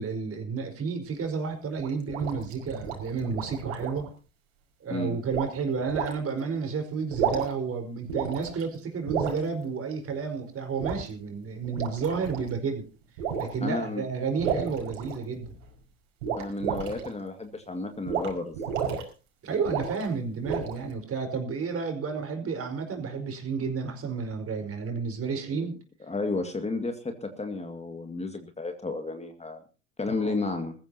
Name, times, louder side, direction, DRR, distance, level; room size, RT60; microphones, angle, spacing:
voice 1, 0.0-4.1 4.8-12.9 13.4-15.5 19.4-25.7 30.2-30.4, right 5 dB, 35° right, 4 dB, 5.1 m, -31 dB
sound 1, 1.8-4.1 5.3-5.5 5.9-6.1 7.0-7.6 8.1-8.6 9.1-9.4 10.8-11.0 11.6-12.5 13.2-13.5 14.4-15.5 16.2-17.1 18.1-18.3 18.5-19.0 19.6-20.0 20.4-20.9, right 7 dB, 75° right, 5.5 m, -31 dB
voice 2, 13.6-14.0 16.3-18.6 26.0-29.6 30.0-30.7, left 3 dB, 15° left, 5 dB, 2.2 m, -32 dB
22.0 x 14.5 x 2.9 m, 0.33 s
hypercardioid pair, 80°, 38 cm